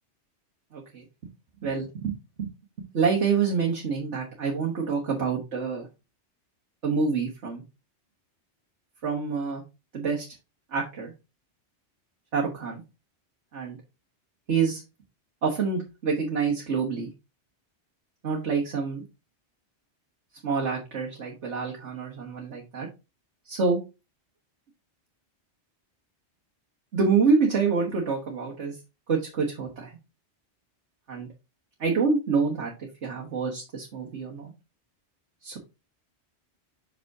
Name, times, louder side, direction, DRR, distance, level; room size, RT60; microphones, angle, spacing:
voice 1, 0.7-1.0 1.6-2.5 2.9-5.9 6.8-7.6 9.0-9.6 9.9-10.3 10.7-11.1 12.3-12.8 13.5-13.8 14.5-14.8 15.4-17.1 18.2-19.0 20.4-22.9 23.5-23.8 26.9-28.8 29.1-29.9 31.1-31.3 31.8-34.5 35.4-35.6, right 5 dB, 80° right, -2 dB, 1.7 m, -27 dB
6.0 x 5.3 x 3.6 m, 0.27 s
omnidirectional pair, 1.2 m